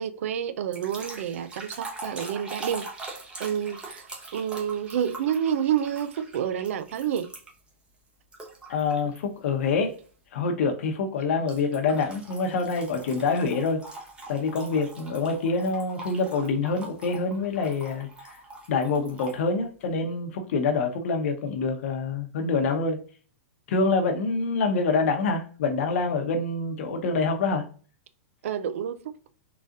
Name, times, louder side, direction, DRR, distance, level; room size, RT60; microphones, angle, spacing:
voice 1, 0.0-3.1 3.4-4.1 4.3-7.3 28.4-29.1, right 9 dB, 65° right, 0.4 m, -29 dB
sound 1, 0.7-7.7 8.3-9.2 9.6-9.9 11.5-19.4, right 3 dB, 10° right, 0.8 m, -42 dB
voice 2, 8.7-9.9 10.3-13.8 14.3-18.1 18.7-23.0 23.7-27.6, left 4 dB, 65° left, 0.9 m, -26 dB
3.9 x 2.4 x 2.4 m
hypercardioid pair, 125°, 8 cm